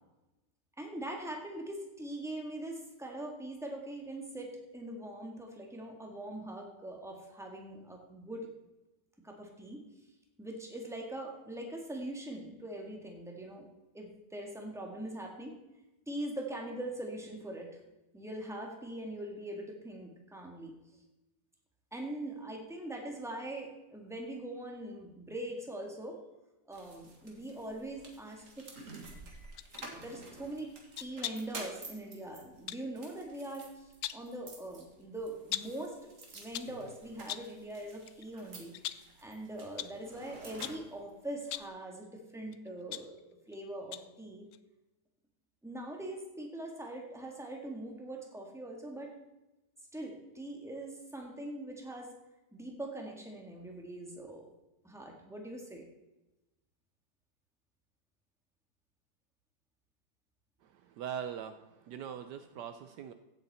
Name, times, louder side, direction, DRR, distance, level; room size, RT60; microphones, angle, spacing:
voice 1, 0.8-8.5 9.2-9.9 10.4-13.7 13.9-15.6 16.1-17.8 18.1-20.8 21.9-26.2 26.7-29.1 29.8-30.7 31.0-43.2 43.5-44.5 45.6-49.1 49.9-52.1 52.5-54.5 54.8-55.9, right 1 dB, ahead, 1 dB, 1.8 m, -42 dB
sound 1, 26.7-41.7, right 3 dB, 45° right, 2.1 m, -51 dB
sound 2, 29.6-29.9 30.9-31.6 32.7-32.9 33.8-34.3 35.5-35.8 36.3-36.8 37.3-37.6 38.1-38.2 38.7-39.2 39.8-40.0 40.6-40.9 41.4-41.8 42.5-43.6 43.9-44.2 44.5-44.6, left 13 dB, 75° left, 0.8 m, -41 dB
voice 2, 60.6-63.1, right 8 dB, 75° right, 9 dB, 1.2 m, -42 dB
15.5 x 8.1 x 4.2 m, 1.0 s
omnidirectional pair, 2.0 m